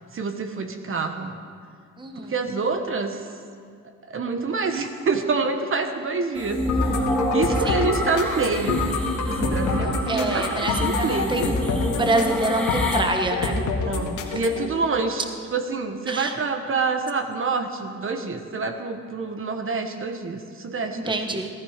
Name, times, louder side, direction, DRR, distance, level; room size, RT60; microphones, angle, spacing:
voice 1, 0.1-1.4 2.2-3.2 4.1-6.6 7.3-9.0 9.3-11.5 13.8-15.2 15.5-21.4, right 4 dB, 45° right, 7 dB, 1.3 m, -27 dB
voice 2, 2.0-2.3 7.6-7.8 10.1-11.6 12.0-13.6 16.1-16.3 21.0-21.5, right 2 dB, 15° right, 5 dB, 1.2 m, -26 dB
sound 1, 6.4-13.0, equal, 5° left, 2.6 m, -28 dB
sound 2, 6.7-14.7, left 4 dB, 80° left, 1.9 m, -27 dB
17.5 x 13.5 x 5.1 m, 2.1 s
cardioid pair, 90°, 30 cm